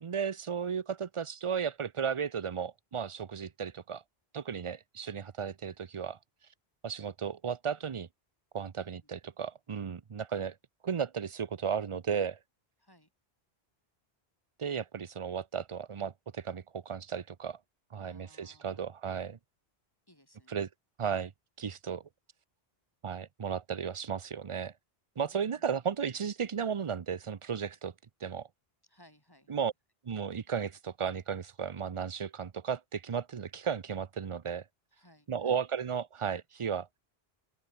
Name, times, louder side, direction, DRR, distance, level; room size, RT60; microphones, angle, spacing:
voice 1, 0.0-4.0 4.3-6.2 6.8-8.1 8.5-10.6 10.8-12.4 14.6-17.6 17.9-19.4 20.5-20.7 21.0-21.3 21.6-22.0 23.0-24.7 25.2-27.9 28.2-28.5 29.5-29.7 30.1-34.6 35.3-37.0, right 7 dB, 40° right, 0.5 m, -34 dB
voice 2, 8.8-9.1 12.8-13.1 18.0-18.9 20.1-20.6 25.2-25.7 26.0-26.1 28.8-29.6 34.9-35.9, left 1 dB, 20° left, 6.1 m, -63 dB
open air
omnidirectional pair, 1.1 m